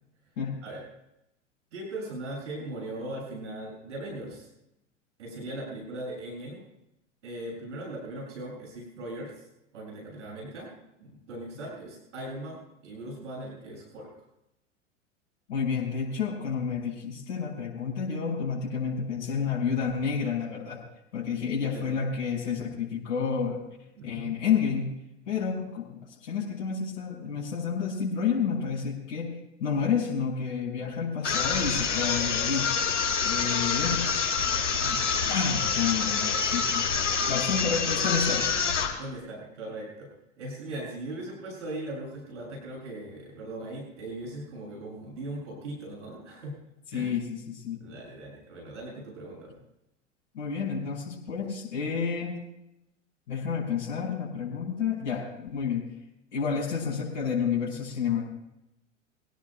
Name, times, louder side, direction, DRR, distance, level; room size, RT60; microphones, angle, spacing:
voice 1, 1.7-4.5 5.2-6.6 7.2-9.4 9.7-10.7 11.0-14.1 21.7-22.0 24.0-24.3 39.0-40.1 40.4-46.6 46.9-47.1 47.8-49.5, right 1 dB, 75° right, -2 dB, 7.5 m, -39 dB
voice 2, 15.5-20.8 21.1-23.6 24.0-24.9 25.3-29.3 29.6-32.7 33.2-34.0 34.8-35.0 35.2-38.5 46.9-47.8 50.3-52.3 53.3-55.9 56.3-58.2, left 6 dB, 65° left, -5 dB, 5.8 m, -30 dB
sound 1, 31.2-39.0, left 6 dB, 80° left, 5.1 m, -27 dB
25.5 x 17.5 x 2.3 m, 0.86 s
hypercardioid pair, 95°, 37 cm